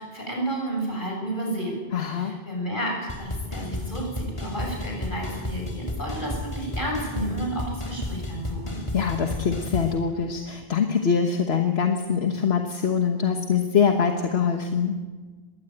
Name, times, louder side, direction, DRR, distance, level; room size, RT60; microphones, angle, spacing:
voice 1, 0.0-1.8 2.0-8.8, right 1 dB, 55° left, -1 dB, 7.3 m, -31 dB
voice 2, 1.9-2.3 8.9-15.0, left 6 dB, 80° left, 5 dB, 1.6 m, -24 dB
sound 1, 3.1-9.9, left 1 dB, 30° left, 2.4 m, -32 dB
21.5 x 16.5 x 9.1 m, 1.4 s
omnidirectional pair, 1.1 m